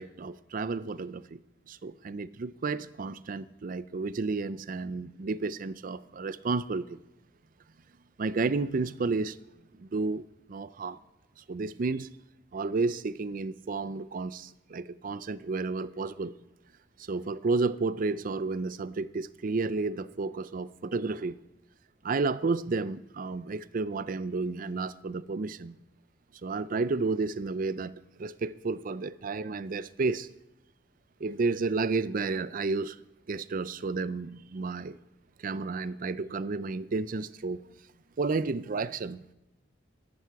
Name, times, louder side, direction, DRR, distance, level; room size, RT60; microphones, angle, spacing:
voice 1, 0.0-1.4 1.7-7.0 8.2-9.4 9.8-10.2 10.5-11.0 11.5-12.1 12.5-16.3 17.1-21.3 22.0-25.7 26.4-27.9 28.2-30.3 31.2-33.0 33.3-35.0 35.4-37.6 38.2-39.2, right 3 dB, 45° right, 0.5 m, -31 dB
14.0 x 12.5 x 4.7 m
head